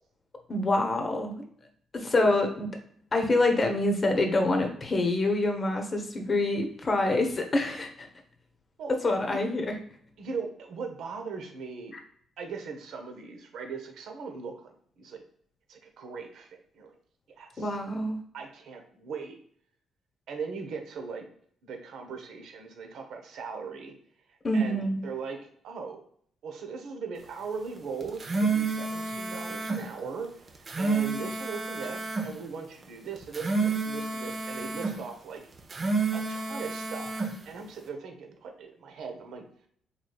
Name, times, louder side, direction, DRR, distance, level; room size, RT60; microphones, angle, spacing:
voice 1, 0.5-1.4 1.9-2.7 3.1-8.1 9.0-9.7 17.6-18.2 24.4-25.0, left 2 dB, 35° left, 3 dB, 0.8 m, -26 dB
voice 2, 8.8-9.4 10.2-11.9 12.4-15.2 15.7-17.0 17.4-17.8 18.3-19.3 20.3-21.3 21.6-23.9 24.5-26.0 26.4-35.4 36.1-39.7, right 5 dB, 75° right, 4 dB, 0.8 m, -39 dB
sound 1, 28.0-29.8 30.5-32.3 33.2-35.0 35.6-37.3, right 4 dB, 40° right, 0.7 m, -30 dB
3.9 x 3.1 x 2.3 m, 0.62 s
cardioid pair, 90°, 0 cm